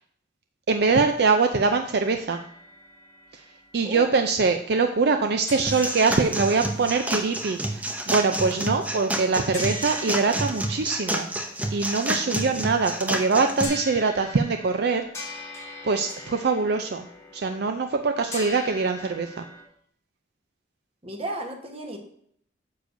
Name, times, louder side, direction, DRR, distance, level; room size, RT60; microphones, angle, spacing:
voice 1, 0.7-2.4 3.7-11.3 11.7-15.0 15.8-17.0 17.3-19.4, right 4 dB, 60° right, 6 dB, 0.5 m, -23 dB
sound 1, 2.3-5.2 5.5-19.6, left 2 dB, 15° left, 1.2 m, -43 dB
sound 2, 5.7-13.7, right 1 dB, 10° right, 0.6 m, -29 dB
voice 2, 21.0-22.0, right 2 dB, 35° right, 3 dB, 1.1 m, -34 dB
9.3 x 6.7 x 2.6 m, 0.67 s
head